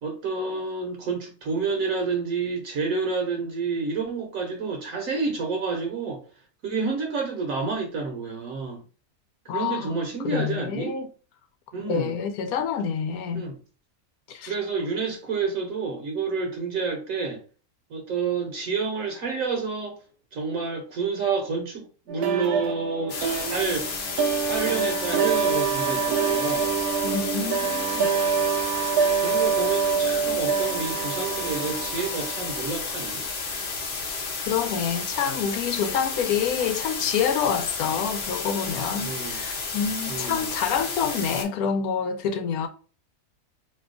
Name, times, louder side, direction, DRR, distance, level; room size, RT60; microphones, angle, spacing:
voice 1, 0.0-6.2 6.6-8.8 9.5-10.9 11.7-12.2 13.3-13.6 14.5-17.4 17.9-20.0 20.3-23.9 24.3-26.7 29.2-33.3 39.0-39.4 40.1-40.5, right 4 dB, 65° right, 1.1 m, -29 dB
voice 2, 9.5-9.9 10.2-11.1 11.9-13.5 14.3-14.5 27.0-28.1 34.5-42.7, left 7 dB, 80° left, 1.1 m, -27 dB
sound 1, 22.1-32.6, right 6 dB, 90° right, 1.1 m, -26 dB
sound 2, 23.1-41.4, left 4 dB, 55° left, 0.9 m, -32 dB
2.8 x 2.2 x 3.7 m
omnidirectional pair, 1.5 m